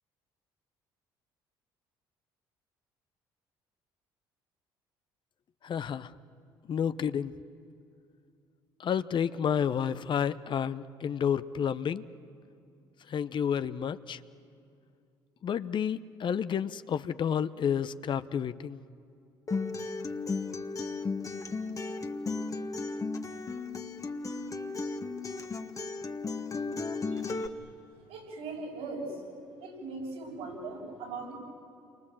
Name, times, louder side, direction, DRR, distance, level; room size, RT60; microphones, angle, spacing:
voice 1, 5.6-6.1 6.7-7.3 8.8-12.0 13.1-14.2 15.4-18.8, left 8 dB, 50° left, 14 dB, 0.8 m, -30 dB
Acoustic guitar, 19.5-27.5, left 3 dB, 30° left, 1.6 m, -35 dB
voice 2, 27.1-27.7 28.1-29.2 29.6-31.3, right 3 dB, 80° right, -2 dB, 7.1 m, -40 dB
29.0 x 24.0 x 7.7 m, 2.5 s
hypercardioid pair, 60°, 11 cm